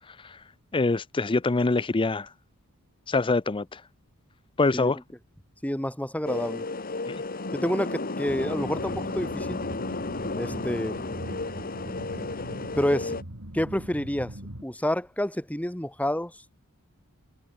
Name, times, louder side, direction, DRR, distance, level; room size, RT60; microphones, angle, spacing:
voice 1, 0.1-0.4 0.7-2.3 3.1-3.8 4.6-5.0 7.1-7.2, left 3 dB, 25° left, 0.5 m, -25 dB
voice 2, 5.6-6.6 7.5-9.6 10.4-11.0 12.4-13.1 13.5-14.3 14.6-16.3, left 1 dB, 5° left, 1.7 m, -28 dB
sound 1, 6.2-13.2, left 3 dB, 40° left, 1.8 m, -33 dB
sound 2, 8.3-14.6, right 1 dB, 70° right, 4.0 m, -41 dB
head